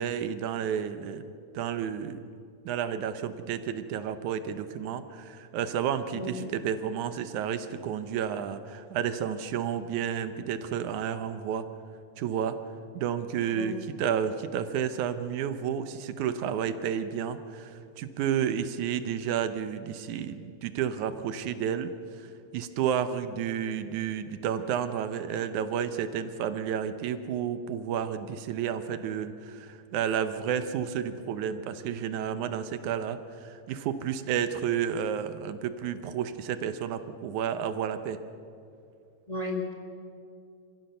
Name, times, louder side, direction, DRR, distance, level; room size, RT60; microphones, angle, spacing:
voice 1, 0.0-2.2 2.7-11.7 12.2-12.6 12.9-21.9 22.2-22.3 22.5-38.2, right 8 dB, 85° right, 11 dB, 2.4 m, -31 dB
voice 2, 39.3-39.7, left 2 dB, 15° left, -1 dB, 2.2 m, -33 dB
26.5 x 15.5 x 6.8 m, 2.5 s
omnidirectional pair, 3.3 m